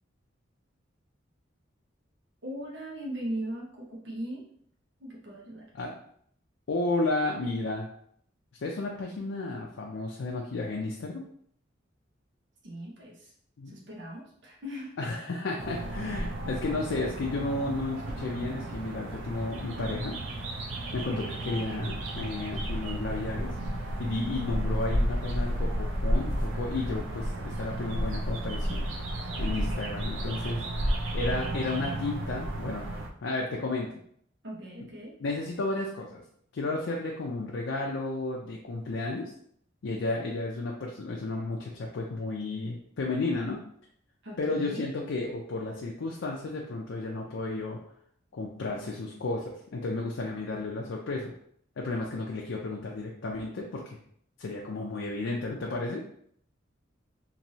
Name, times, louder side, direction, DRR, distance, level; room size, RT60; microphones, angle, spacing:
voice 1, 2.4-4.4 5.0-5.7 12.6-13.3 13.7-14.9 34.4-35.1 44.2-44.9, right 1 dB, 65° right, -4 dB, 0.9 m, -39 dB
voice 2, 6.7-7.9 8.6-11.2 13.6-13.8 15.0-20.2 20.9-23.5 24.0-28.8 29.4-32.9 33.2-33.9 35.2-36.2 36.5-39.3 39.8-43.6 44.4-47.8 48.3-51.3 51.8-54.0 54.4-56.0, left 2 dB, 75° left, -1 dB, 0.4 m, -33 dB
sound 1, 15.6-33.1, right 1 dB, 90° right, 0.5 m, -32 dB
3.0 x 2.6 x 2.7 m, 0.66 s
head